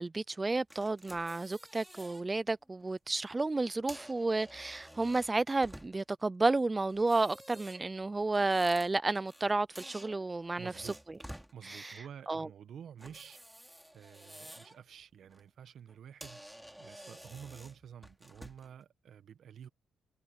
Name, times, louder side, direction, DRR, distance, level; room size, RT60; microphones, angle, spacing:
voice 1, 0.0-10.9 11.6-12.5, right 3 dB, 20° right, 0.4 m, -32 dB
sound 1, 0.7-2.2 2.7-2.9 3.7-6.2 6.9-9.5 9.8-11.5 13.0-14.8 15.2-15.4 15.9-16.0 16.2-18.7, equal, 5° right, 2.8 m, -51 dB
voice 2, 10.6-11.0 11.5-13.4 13.9-16.4 16.8-19.7, right 8 dB, 65° right, 1.4 m, -50 dB
cardioid pair, 90°, 0 cm